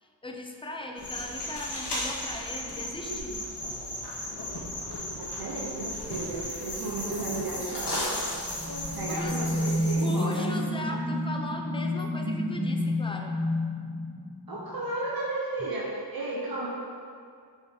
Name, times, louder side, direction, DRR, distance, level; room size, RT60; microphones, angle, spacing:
voice 1, 0.0-3.4 8.6-8.7 9.1-9.6 10.0-13.3 15.6-15.7, left 1 dB, 15° left, 2 dB, 0.4 m, -39 dB
sound 1, 1.0-10.0, left 1 dB, 70° left, 1.5 m, -35 dB
voice 2, 5.2-8.1 8.9-10.4 14.5-16.7, right 2 dB, 55° right, -5 dB, 0.9 m, -34 dB
sound 2, 5.7-10.5, equal, 5° right, 1.5 m, -45 dB
sound 3, 8.3-14.9, left 1 dB, 25° right, 1.0 m, -30 dB
7.0 x 4.5 x 3.6 m, 2.2 s
wide cardioid pair, 160°, 42 cm